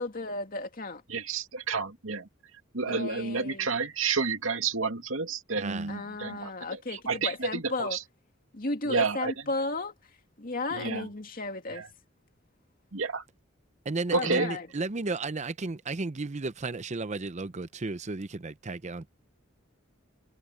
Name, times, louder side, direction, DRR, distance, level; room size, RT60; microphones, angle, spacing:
voice 1, 0.0-1.0 2.8-3.7 5.9-8.0 8.5-9.9 10.4-11.8 14.1-14.7, left 2 dB, 45° left, 2.4 m, -34 dB
voice 2, 1.1-2.3 2.7-8.0 8.8-9.3 10.7-11.1 11.7-11.9 12.9-13.2 14.1-14.5, right 4 dB, 80° right, 2.4 m, -30 dB
voice 3, 5.6-5.9 13.8-19.1, right 3 dB, 35° right, 0.7 m, -34 dB
head